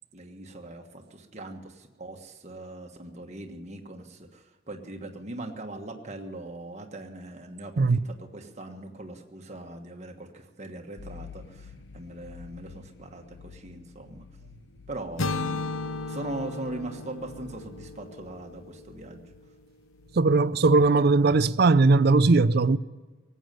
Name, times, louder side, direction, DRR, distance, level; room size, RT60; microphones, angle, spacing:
voice 1, 0.1-14.2 14.9-15.7 16.1-19.3, right 2 dB, 35° right, 1.4 m, -40 dB
sound 1, 11.0-21.9, left 6 dB, 55° left, 0.6 m, -51 dB
sound 2, 15.2-19.2, left 3 dB, 85° left, 0.9 m, -34 dB
voice 2, 20.1-22.8, right 3 dB, 50° right, 0.5 m, -19 dB
18.5 x 8.2 x 9.3 m
head